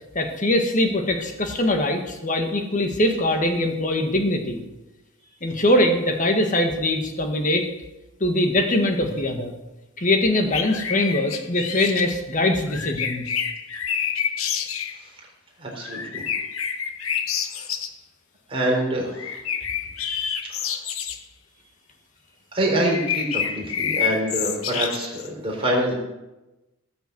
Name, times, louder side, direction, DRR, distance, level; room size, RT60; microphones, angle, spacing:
voice 1, 0.2-4.6 5.4-7.7 8.2-9.5 10.0-13.3, left 1 dB, 35° left, 5 dB, 1.8 m, -22 dB
sound 1, 10.5-12.0 12.7-15.0 15.8-17.9 19.1-21.2 22.8-25.3, left 8 dB, 70° left, 1.1 m, -28 dB
voice 2, 15.6-16.2 18.5-19.1 22.5-25.9, right 1 dB, 25° right, -1 dB, 3.9 m, -25 dB
18.0 x 6.9 x 8.0 m, 1.0 s
head